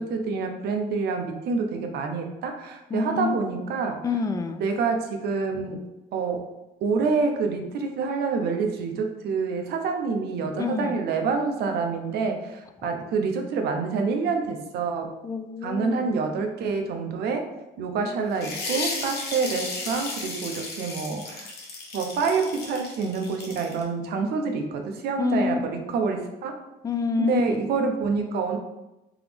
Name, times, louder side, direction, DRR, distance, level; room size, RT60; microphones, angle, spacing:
voice 1, 0.0-4.0 4.6-5.8 6.1-6.4 6.8-15.1 15.6-17.4 17.8-21.5 21.9-26.5 27.2-28.6, right 4 dB, 70° right, 4 dB, 0.7 m, -27 dB
voice 2, 2.9-3.3 4.0-4.7 10.6-11.0 15.2-16.0 25.2-25.7 26.8-27.6, left 4 dB, 20° left, 7 dB, 0.3 m, -27 dB
sound 1, 18.3-23.8, left 3 dB, 70° left, 1.0 m, -34 dB
3.6 x 2.9 x 3.4 m, 0.96 s
cardioid pair, 110°, 17 cm